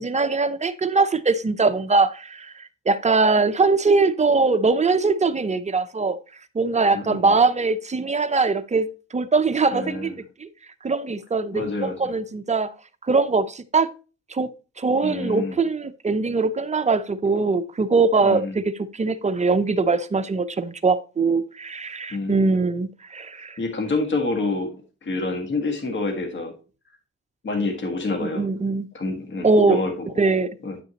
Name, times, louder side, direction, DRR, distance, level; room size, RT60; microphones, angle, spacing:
voice 1, 0.0-6.2 6.5-10.1 10.4-10.5 10.8-12.7 13.0-13.9 14.3-14.5 14.8-18.6 18.9-23.6 28.2-28.9 29.4-29.8 30.2-30.6, right 4 dB, 25° right, 0.7 m, -21 dB
voice 2, 6.9-7.4 9.7-10.1 11.5-12.0 15.0-15.6 18.2-18.6 22.1-22.6 23.6-24.7 25.0-26.5 27.4-28.5 28.9-30.1 30.6-30.8, left 3 dB, 40° left, 1.8 m, -27 dB
10.0 x 6.1 x 2.9 m
cardioid pair, 90°, 30 cm